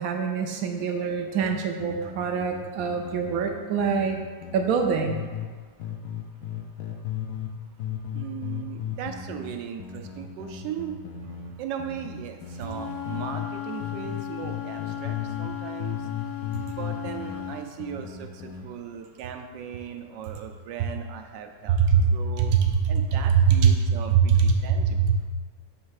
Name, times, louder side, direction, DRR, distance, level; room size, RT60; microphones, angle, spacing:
voice 1, 0.0-4.2 4.5-5.2 21.7-22.1 22.4-25.3, right 6 dB, 70° right, 4 dB, 0.8 m, -23 dB
sound 1, 1.4-5.5 5.8-7.5 7.8-13.5 13.8-15.5 15.8-18.7, left 8 dB, 70° left, 1.2 m, -36 dB
voice 2, 8.1-11.0 11.6-16.1 16.6-21.8 22.1-22.5 22.9-25.1, right 8 dB, 90° right, 5 dB, 1.3 m, -38 dB
Wind instrument woodwind instrument, 12.5-17.6, left 12 dB, 55° left, 0.7 m, -36 dB
6.4 x 3.3 x 4.7 m, 1.5 s
omnidirectional pair, 1.9 m